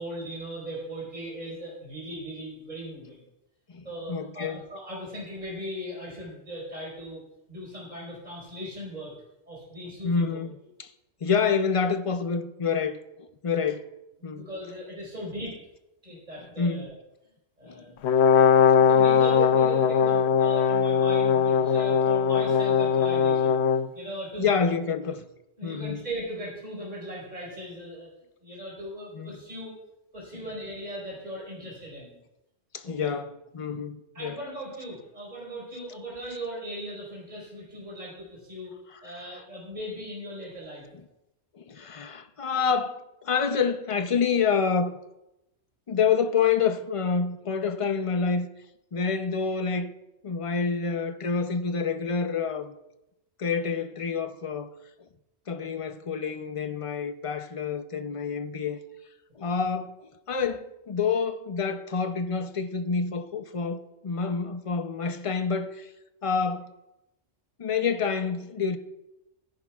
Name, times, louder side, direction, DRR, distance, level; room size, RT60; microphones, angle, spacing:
voice 1, 0.0-3.2 3.8-7.2 7.5-9.1 9.5-10.4 14.3-15.6 16.0-16.9 17.6-17.9 18.3-23.6 23.9-24.6 25.6-28.1 28.4-29.7 30.1-32.2 33.0-33.1 34.1-38.7 39.0-40.8, right 1 dB, 35° right, 4.6 m, -38 dB
voice 2, 4.1-4.6 10.0-10.5 10.8-10.9 11.2-13.0 13.4-13.9 14.2-14.5 16.6-16.9 17.6-17.8 24.4-25.3 25.6-26.0 29.1-29.3 30.3-30.4 32.7-34.4 41.5-44.9 45.9-48.5 48.9-49.9 50.2-52.7 53.4-54.7 55.5-58.8 59.4-59.9 60.3-65.9 66.2-66.7 67.6-68.8, left 5 dB, 40° left, 0.5 m, -27 dB
Brass instrument, 18.0-23.9, left 7 dB, 65° left, 0.8 m, -20 dB
18.0 x 10.5 x 2.4 m
omnidirectional pair, 1.3 m